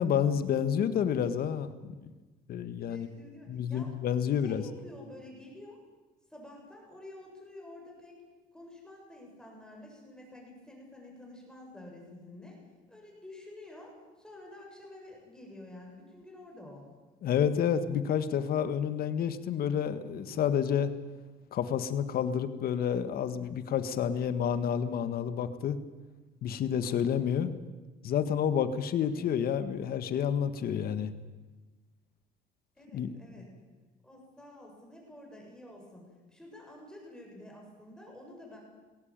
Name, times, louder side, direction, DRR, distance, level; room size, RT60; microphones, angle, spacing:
voice 1, 0.0-2.0 2.5-3.1 3.5-4.6 17.2-20.9 21.5-25.8 26.4-27.5 28.0-31.1 32.9-33.1, left 8 dB, 65° left, 11 dB, 1.7 m, -29 dB
voice 2, 2.9-3.9 4.4-5.8 6.3-8.2 8.5-12.6 12.9-16.9 29.0-29.3 32.8-33.5 34.0-38.6, left 1 dB, 5° left, -1 dB, 7.5 m, -49 dB
20.5 x 17.0 x 9.0 m, 1.2 s
cardioid pair, 110°, 17 cm